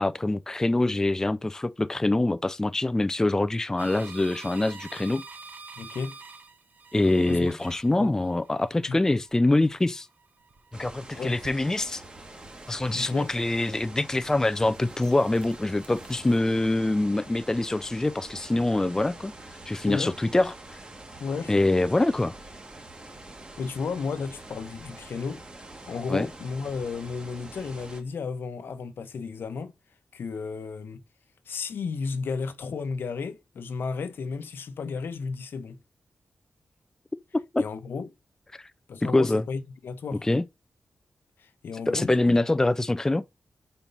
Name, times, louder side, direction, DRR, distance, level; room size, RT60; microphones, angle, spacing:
voice 1, 0.0-5.2 6.9-10.1 10.8-12.0 12.7-19.3 19.7-20.5 21.5-22.3 26.1-26.3 37.5-37.6 39.0-39.4 40.2-40.4 41.9-43.2, left 2 dB, 15° left, 0.4 m, -24 dB
sound 1, 3.8-14.2 14.6-16.4, right 4 dB, 55° right, 1.1 m, -49 dB
voice 2, 5.8-6.1 7.3-7.5 8.0-8.1 8.9-9.0 11.2-11.4 12.9-13.3 19.8-20.1 21.2-21.5 23.6-25.4 25.9-29.7 30.1-31.0 31.5-35.8 37.6-38.1 38.9-40.3 41.4-42.4, left 5 dB, 80° left, 0.9 m, -33 dB
sound 2, 10.7-28.0, right 2 dB, 25° right, 1.3 m, -45 dB
5.3 x 4.4 x 5.4 m
wide cardioid pair, 115°, 4 cm